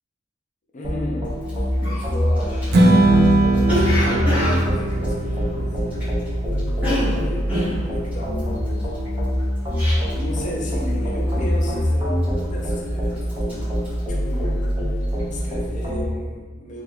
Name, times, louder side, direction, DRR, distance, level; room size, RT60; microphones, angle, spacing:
voice 1, 0.7-6.0 6.7-8.9 10.1-13.7 14.1-14.7 15.3-16.8, equal, 45° left, -2 dB, 0.5 m, -35 dB
sound 1, 0.8-16.1, equal, 25° right, 0.7 m, -24 dB
Cough, 1.4-1.5 1.8-6.3 6.5-10.4 10.6-11.0 11.3-11.8 12.2-12.8 13.1-14.8 15.1-15.4, left 1 dB, 10° right, 1.2 m, -28 dB
Strum, 2.7-9.0, right 2 dB, 60° right, 0.4 m, -21 dB
2.8 x 2.3 x 3.3 m, 1.4 s
head